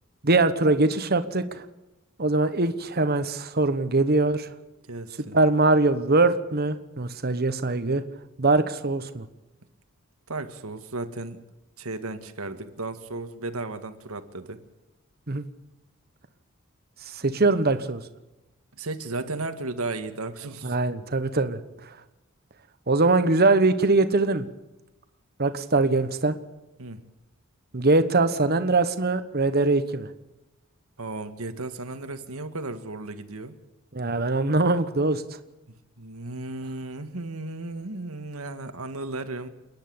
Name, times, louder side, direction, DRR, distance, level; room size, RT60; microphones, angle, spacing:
voice 1, 0.2-1.6 2.2-4.5 5.3-8.0 8.4-9.2 15.3-15.4 17.1-18.0 20.6-21.6 21.9-22.0 22.9-24.5 25.4-26.4 27.7-30.1 33.9-35.2, right 3 dB, 45° right, 10 dB, 1.2 m, -22 dB
voice 2, 4.9-5.4 10.3-11.4 11.8-14.6 18.7-20.8 26.8-27.0 31.0-33.5 35.7-39.5, right 2 dB, 85° right, 9 dB, 1.7 m, -35 dB
29.0 x 10.5 x 8.7 m, 0.99 s
head